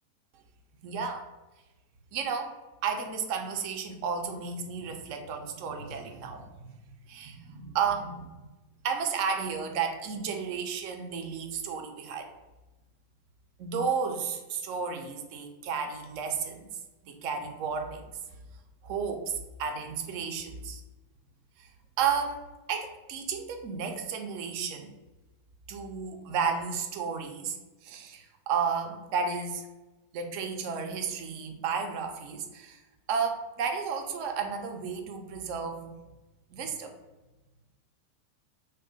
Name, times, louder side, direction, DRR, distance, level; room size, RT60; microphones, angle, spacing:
voice 1, 0.8-1.3 2.1-2.6 2.8-6.5 7.1-8.4 8.8-12.3 13.6-16.7 17.0-18.0 18.8-20.8 21.6-21.7 22.0-22.4 22.7-24.9 25.7-27.6 27.8-29.7 30.1-32.8 33.1-35.9 36.5-36.9, right 6 dB, 45° right, 4 dB, 0.4 m, -32 dB
2.7 x 2.0 x 3.9 m, 1.1 s
figure-of-eight pair, 90°, 0 cm